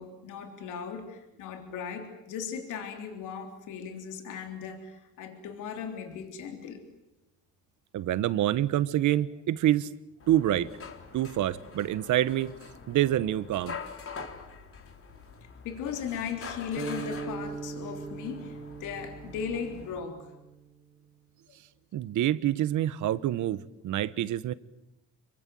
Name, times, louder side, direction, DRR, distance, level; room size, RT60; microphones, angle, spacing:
voice 1, 0.0-6.8 15.6-20.3, left 7 dB, 90° left, 3.5 m, -37 dB
voice 2, 7.9-9.9 10.3-10.7 11.1-12.5 12.9-13.8 21.9-24.5, right 13 dB, 80° right, 1.2 m, -26 dB
sound 1, 10.2-20.0, left 5 dB, 45° left, 4.0 m, -45 dB
sound 2, 16.8-21.0, right 4 dB, 15° right, 2.7 m, -40 dB
28.0 x 23.5 x 7.7 m
cardioid pair, 90°, 30 cm